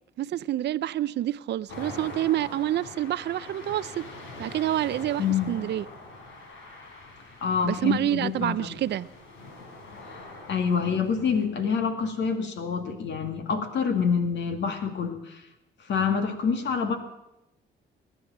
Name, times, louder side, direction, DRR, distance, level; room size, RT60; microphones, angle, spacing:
voice 1, 0.2-4.0 4.4-5.9 7.6-9.1, right 12 dB, 60° right, 0.5 m, -27 dB
sound 1, 1.7-11.4, left 2 dB, 80° left, 3.7 m, -44 dB
voice 2, 7.4-8.8 10.0-15.4 15.8-17.0, left 6 dB, 65° left, 2.0 m, -27 dB
19.5 x 10.0 x 7.3 m
cardioid pair, 90°, 20 cm